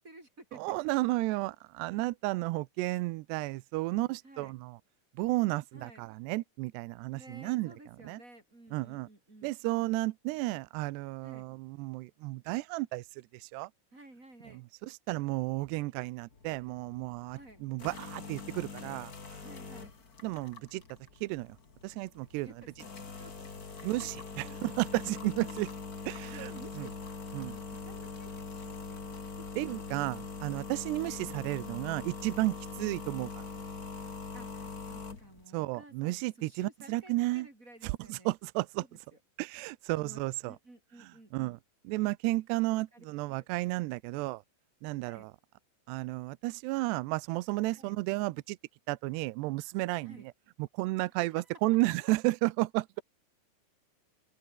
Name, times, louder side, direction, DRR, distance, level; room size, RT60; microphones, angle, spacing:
voice 1, 0.0-0.6 1.0-1.1 4.0-4.5 5.7-6.0 7.1-9.5 11.2-11.5 13.9-14.6 17.3-17.6 19.3-19.9 22.2-22.7 23.2-23.5 23.7-24.3 25.1-25.7 26.2-27.0 27.5-29.2 31.0-31.2 34.3-38.3 38.9-39.2 39.9-41.6 42.7-43.0 43.4-43.5 45.1-45.3 47.7-47.9 50.0-50.3 51.2-51.5, right 1 dB, 20° right, 4.2 m, -54 dB
voice 2, 0.5-4.8 5.2-7.7 8.0-8.2 8.7-9.1 9.4-13.7 14.5-19.1 20.2-20.8 21.2-21.6 21.8-22.5 23.8-25.7 26.1-26.5 26.8-26.9 27.3-27.6 29.6-33.5 35.5-37.5 37.8-38.8 39.4-40.6 41.3-41.6 41.9-44.4 44.8-45.3 45.9-48.6 48.9-50.2 50.6-53.0, right 21 dB, 85° right, 2.5 m, -33 dB
sound 1, 16.3-35.4, left 4 dB, 30° left, 1.9 m, -43 dB
open air
omnidirectional pair, 5.4 m